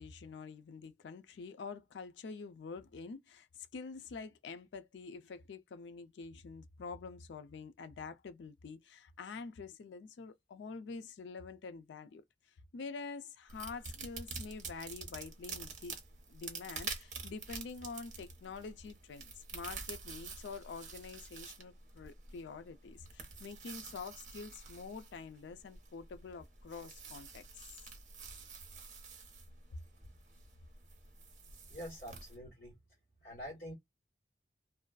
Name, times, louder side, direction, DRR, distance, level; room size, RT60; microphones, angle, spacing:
voice 1, 0.0-12.2 12.7-16.0 16.3-27.8, left 4 dB, 85° left, 0.4 m, -47 dB
sound 1, 13.5-32.4, right 5 dB, 45° right, 0.8 m, -48 dB
voice 2, 31.7-32.7 33.2-33.7, equal, 55° left, 1.4 m, -46 dB
2.4 x 2.2 x 2.3 m
head